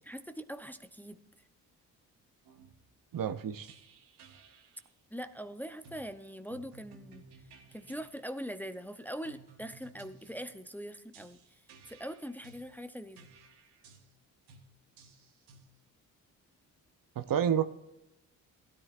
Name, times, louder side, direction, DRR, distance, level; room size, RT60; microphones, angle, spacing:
voice 1, 0.1-1.2 5.1-7.2 7.7-11.4 11.9-13.3, equal, 5° left, 9 dB, 0.7 m, -42 dB
sound 1, 2.4-2.9 3.6-4.8 5.8-6.1 6.5-8.1 9.2-10.5 11.1-12.7 13.2-14.1 14.5-14.7 15.0-15.7, right 4 dB, 85° right, 1.4 m, -57 dB
voice 2, 3.1-3.7 17.2-17.6, right 9 dB, 55° right, 11 dB, 0.8 m, -29 dB
16.5 x 10.0 x 2.5 m, 0.91 s
supercardioid pair, 60°, 40 cm